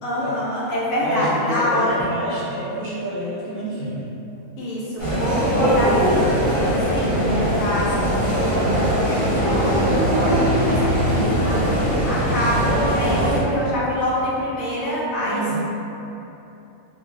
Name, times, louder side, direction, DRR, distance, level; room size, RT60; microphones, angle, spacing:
voice 1, 0.0-2.1 4.6-11.6 12.0-15.4, equal, 90° left, -7 dB, 1.0 m, -25 dB
voice 2, 1.0-4.1 15.2-15.6, equal, 45° right, -9 dB, 0.7 m, -28 dB
sound 1, 5.0-13.4, equal, 45° left, 1.0 m, -20 dB
3.1 x 2.3 x 2.5 m, 2.9 s
omnidirectional pair, 1.4 m